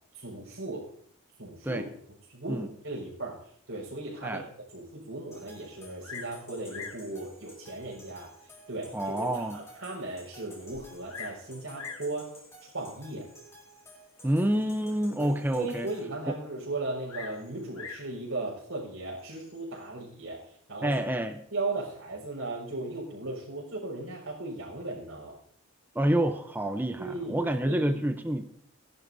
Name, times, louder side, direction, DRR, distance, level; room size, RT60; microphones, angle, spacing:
voice 1, 0.1-0.9 1.4-1.8 2.3-4.4 4.7-8.3 8.7-12.3 12.6-13.3 15.2-21.0 21.5-25.4 27.0-28.0, right 2 dB, 65° right, -6 dB, 4.6 m, -37 dB
sound 1, 5.3-16.0, equal, 15° left, 3.2 m, -52 dB
Bird vocalization bird call bird song, 6.0-6.4 6.7-7.1 7.9-8.0 8.6-8.7 9.2-9.3 9.5-9.6 10.7-11.4 11.7-12.1 13.1-13.4 17.1-18.1 19.2-19.6, left 6 dB, 80° left, 1.6 m, -43 dB
voice 2, 8.9-9.6 14.2-15.9 16.3-16.4 20.8-21.4 25.9-28.4, right 1 dB, 10° right, 6 dB, 0.6 m, -28 dB
20.5 x 11.0 x 2.7 m, 0.67 s
head